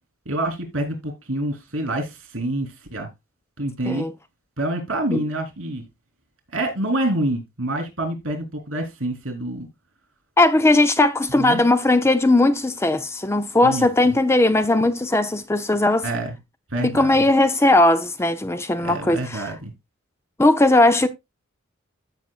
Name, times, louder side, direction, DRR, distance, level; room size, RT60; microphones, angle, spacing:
voice 1, 0.2-3.1 3.6-4.1 4.6-5.8 6.5-9.7 11.4-11.6 13.6-14.1 16.0-16.4 16.7-17.2 18.8-19.7, right 1 dB, 75° right, 3.4 m, -27 dB
voice 2, 10.4-16.1 16.8-19.5 20.4-21.1, left 2 dB, 15° left, 0.5 m, -18 dB
15.0 x 5.8 x 2.4 m
head